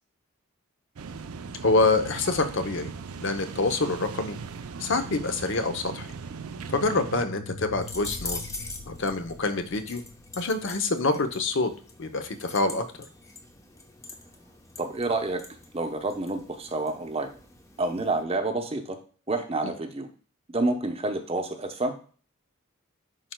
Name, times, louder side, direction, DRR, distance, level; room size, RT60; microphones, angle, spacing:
sound 1, 1.0-7.3, right 5 dB, 90° right, 0.6 m, -39 dB
voice 1, 1.6-2.9 3.2-4.4 4.8-6.1 6.7-8.4 8.9-10.0 10.4-11.7 12.0-12.8, left 3 dB, 60° left, 8 dB, 0.7 m, -26 dB
sound 2, 6.4-11.4, left 2 dB, 90° left, 1.8 m, -43 dB
sound 3, 7.8-18.2, left 3 dB, 15° left, 0.7 m, -44 dB
voice 2, 14.8-15.4 15.7-17.3 17.8-19.0 19.3-20.1 20.5-21.9, right 2 dB, 25° right, 5 dB, 0.8 m, -28 dB
10.5 x 4.4 x 2.2 m, 0.40 s
head